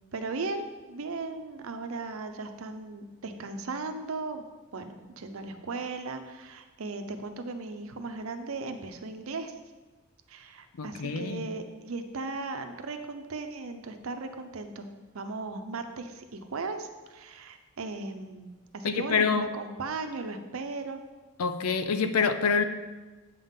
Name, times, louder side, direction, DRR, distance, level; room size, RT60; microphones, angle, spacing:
voice 1, 0.1-4.4 4.7-9.5 10.3-14.9 15.1-21.0, right 3 dB, 70° right, 7 dB, 0.6 m, -37 dB
voice 2, 10.8-11.4 18.8-19.5 21.4-22.6, left 5 dB, 90° left, 10 dB, 0.5 m, -26 dB
8.2 x 3.6 x 5.6 m, 1.2 s
head